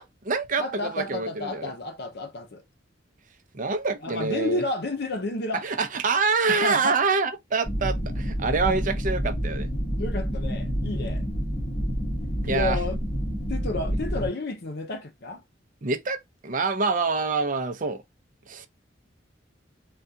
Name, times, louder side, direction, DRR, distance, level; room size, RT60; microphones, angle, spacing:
voice 1, 0.0-1.7 3.5-4.6 5.6-9.7 12.4-12.8 15.8-18.0 18.5-18.7, right 4 dB, 45° right, 0.6 m, -26 dB
voice 2, 0.6-2.6 4.0-5.6 6.5-7.0 8.6-8.8 10.0-11.2 12.5-13.0 13.5-15.4, left 2 dB, 60° left, 0.7 m, -31 dB
sound 1, 7.6-14.3, equal, 30° left, 1.4 m, -28 dB
3.6 x 2.3 x 2.6 m
head